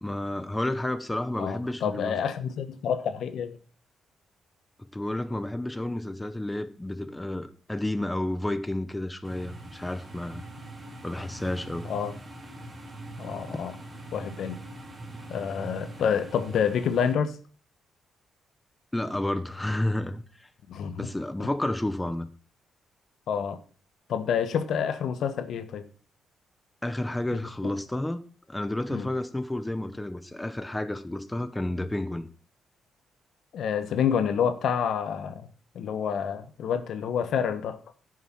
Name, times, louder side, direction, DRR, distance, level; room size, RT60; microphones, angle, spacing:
voice 1, 0.0-2.2 4.9-10.5 11.0-11.9 13.5-13.6 18.9-20.5 21.0-22.3 26.8-28.2 28.5-32.3, left 1 dB, 10° left, 0.9 m, -31 dB
voice 2, 1.4-3.6 11.8-12.1 13.2-13.7 14.1-14.6 15.3-17.4 20.7-21.1 21.4-21.5 23.3-23.6 24.1-25.8 28.9-29.1 33.5-35.5 35.7-37.8, left 7 dB, 75° left, 1.2 m, -28 dB
sound 1, 9.2-17.1, right 2 dB, 25° right, 3.2 m, -42 dB
11.0 x 6.4 x 5.7 m
cardioid pair, 100°, 0 cm